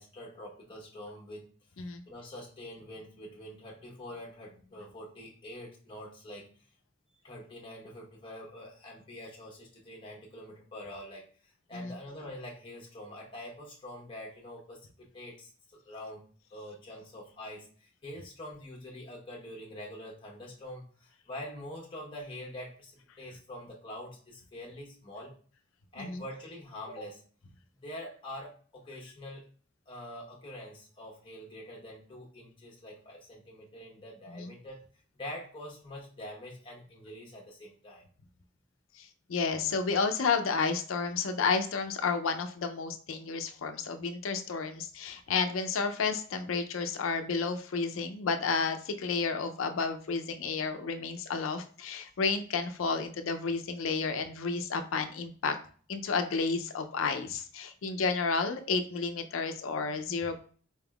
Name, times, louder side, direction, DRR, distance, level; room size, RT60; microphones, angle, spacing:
voice 1, 0.0-1.5 2.1-6.5 7.2-16.3 16.5-25.4 25.9-27.2 27.7-29.5 29.9-34.8 35.1-38.0, left 1 dB, 25° left, -2 dB, 1.0 m, -45 dB
voice 2, 39.3-55.5 55.9-60.4, left 4 dB, 80° left, 7 dB, 0.5 m, -31 dB
4.2 x 3.5 x 2.3 m, 0.43 s
head